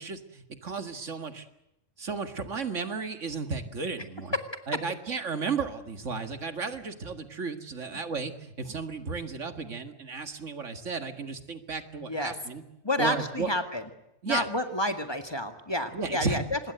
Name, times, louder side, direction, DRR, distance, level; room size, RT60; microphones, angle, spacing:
voice 1, 0.0-1.5 2.0-4.4 4.7-12.6 13.0-13.5 14.2-14.5 15.9-16.4, right 4 dB, 75° right, 8 dB, 2.2 m, -34 dB
voice 2, 12.0-12.3 12.8-13.8 14.3-16.6, left 1 dB, 20° left, 7 dB, 1.9 m, -29 dB
25.5 x 20.5 x 7.9 m, 0.85 s
omnidirectional pair, 1.3 m